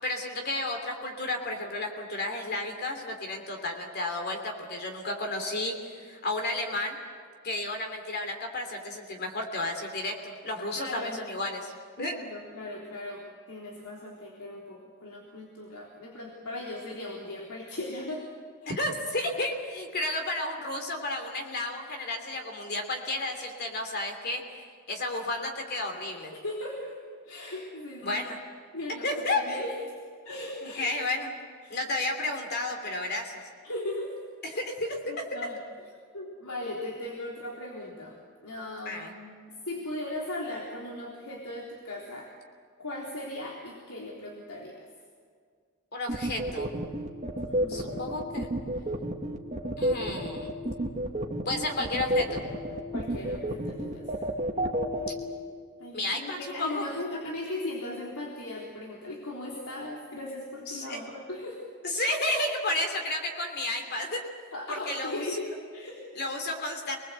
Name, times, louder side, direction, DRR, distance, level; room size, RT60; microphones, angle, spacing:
voice 1, 0.0-7.0 7.4-11.7 12.0-12.2 18.7-24.4 24.9-26.3 28.0-28.4 29.0-29.6 30.6-31.4 31.7-33.4 34.4-35.3 38.8-39.1 45.9-46.7 47.7-48.5 49.8-50.5 51.4-52.4 55.9-56.9 60.7-61.0 61.8-64.2 64.7-65.4 66.1-67.0, left 2 dB, 50° left, 4 dB, 3.0 m, -32 dB
voice 2, 10.7-11.2 12.1-18.3 18.6-18.7 26.3-27.0 27.2-28.2 28.7-29.7 30.2-30.9 31.6-31.8 33.6-34.2 35.1-35.6 36.1-39.4 39.7-42.3 42.8-44.9 47.4-48.0 52.9-54.2 55.8-61.6 64.5-66.2, left 1 dB, 85° left, -1 dB, 3.7 m, -38 dB
sound 1, 46.1-55.1, right 1 dB, 30° right, 2.0 m, -30 dB
27.5 x 21.0 x 8.1 m, 2.1 s
head